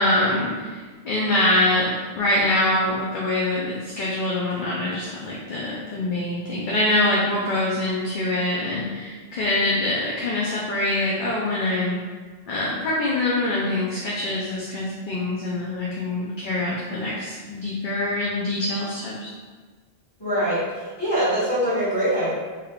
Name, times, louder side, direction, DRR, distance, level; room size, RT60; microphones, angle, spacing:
voice 1, 0.0-12.0 12.5-19.3, left 1 dB, 60° left, -5 dB, 0.6 m, -24 dB
voice 2, 20.2-22.3, equal, 25° left, -10 dB, 1.5 m, -23 dB
3.3 x 3.1 x 2.3 m, 1.4 s
omnidirectional pair, 1.1 m